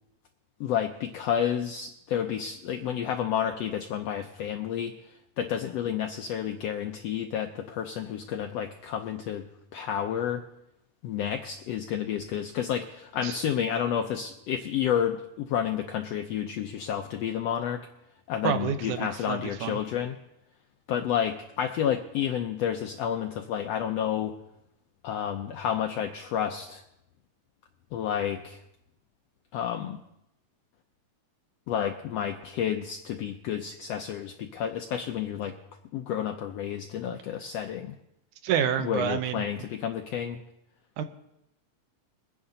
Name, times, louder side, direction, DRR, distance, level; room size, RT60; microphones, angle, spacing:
voice 1, 0.6-4.9 5.4-9.5 9.7-10.4 11.0-17.9 18.3-20.1 20.9-24.3 25.0-26.8 27.9-28.6 29.5-30.0 31.7-35.6 35.9-37.9 38.8-40.4, left 9 dB, 80° left, 5 dB, 1.5 m, -30 dB
voice 2, 18.4-19.8 38.4-39.5 41.0-41.1, right 8 dB, 80° right, 9 dB, 2.3 m, -28 dB
23.0 x 9.8 x 3.9 m, 0.83 s
omnidirectional pair, 3.6 m